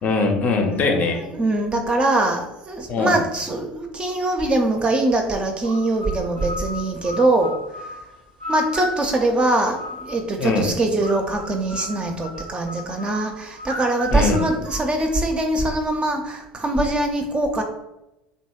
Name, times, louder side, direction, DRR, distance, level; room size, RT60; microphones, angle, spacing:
voice 1, 0.0-1.3 2.9-3.2 10.4-10.7 14.1-14.4, left 3 dB, 35° left, 4 dB, 0.5 m, -21 dB
voice 2, 1.2-7.5 8.5-17.6, right 2 dB, 25° right, 4 dB, 0.4 m, -22 dB
sound 1, 5.6-10.3 11.0-15.5, left 1 dB, 85° right, 0.5 m, -35 dB
3.0 x 2.7 x 2.2 m, 0.93 s
figure-of-eight pair, 70°, 4 cm